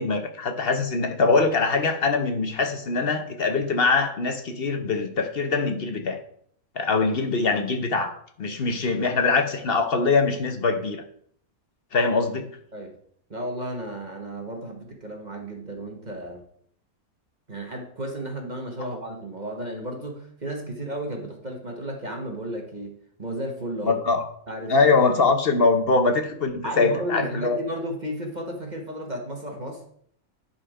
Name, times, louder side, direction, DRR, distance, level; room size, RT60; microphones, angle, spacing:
voice 1, 0.0-6.2 6.7-11.0 11.9-12.5 23.8-24.2 24.7-27.6, left 4 dB, 45° left, 5 dB, 1.0 m, -23 dB
voice 2, 13.3-16.4 17.5-24.0 24.5-24.9 26.6-29.8, right 1 dB, 30° right, 1 dB, 1.3 m, -33 dB
10.5 x 4.3 x 4.9 m, 0.63 s
omnidirectional pair, 1.6 m